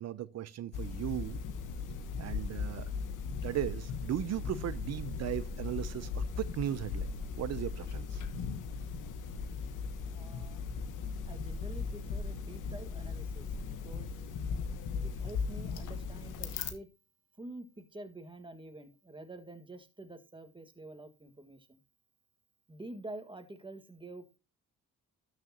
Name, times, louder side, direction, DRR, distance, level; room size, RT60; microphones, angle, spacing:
voice 1, 0.0-1.4 2.2-2.9 3.4-7.1 7.4-8.2, right 12 dB, 60° right, 0.6 m, -37 dB
sound 1, 0.7-16.7, left 5 dB, 90° left, 1.3 m, -38 dB
voice 2, 10.1-10.6 11.3-14.1 15.0-16.9 17.4-21.8 22.7-24.4, right 2 dB, 15° right, 1.7 m, -48 dB
12.5 x 6.6 x 2.8 m
cardioid pair, 90°, 30 cm